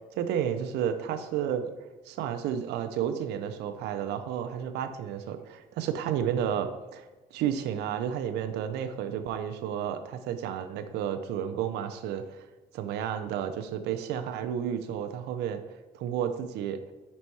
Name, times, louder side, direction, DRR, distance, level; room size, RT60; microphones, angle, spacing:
voice 1, 0.2-1.7 2.1-7.1 7.3-12.5 12.7-15.6 15.9-16.8, right 9 dB, 80° right, 7 dB, 0.5 m, -31 dB
5.3 x 4.2 x 4.6 m, 1.1 s
cardioid pair, 110°, 17 cm